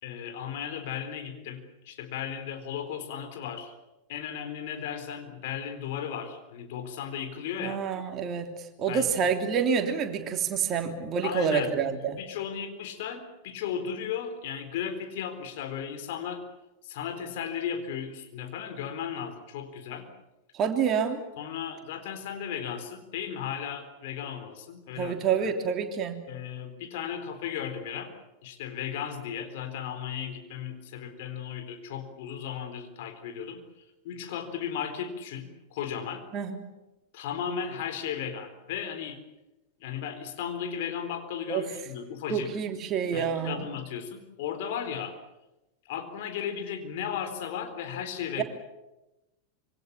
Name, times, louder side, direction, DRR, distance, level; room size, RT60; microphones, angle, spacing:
voice 1, 0.0-3.7 4.1-7.8 8.9-9.3 11.2-16.4 16.8-20.1 21.4-25.4 26.3-28.1 28.4-36.2 37.1-39.2 39.8-42.5 43.1-45.2 45.9-48.4, left 8 dB, 50° left, 7 dB, 4.0 m, -35 dB
voice 2, 7.6-12.2 20.5-21.2 25.0-26.3 36.3-36.6 41.5-41.6 42.3-43.6 48.4-48.5, right 6 dB, 30° right, 5 dB, 3.2 m, -28 dB
26.0 x 24.5 x 7.3 m, 0.98 s
figure-of-eight pair, 90°, 0 cm